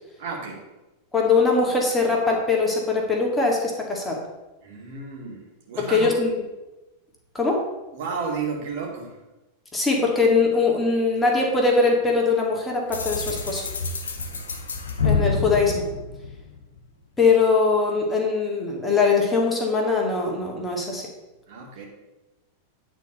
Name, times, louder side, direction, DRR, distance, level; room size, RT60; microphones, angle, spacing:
voice 1, 0.2-0.6 4.6-6.1 7.9-9.1 14.1-14.6 21.5-21.8, right 5 dB, 50° right, -1 dB, 2.4 m, -33 dB
voice 2, 1.1-4.2 5.8-6.3 7.3-7.7 9.7-13.6 15.0-15.8 17.2-21.1, left 4 dB, 10° left, -1 dB, 2.0 m, -21 dB
sound 1, 12.9-16.8, left 4 dB, 65° left, 1.2 m, -27 dB
9.7 x 4.5 x 6.6 m, 1.1 s
figure-of-eight pair, 90°, 0 cm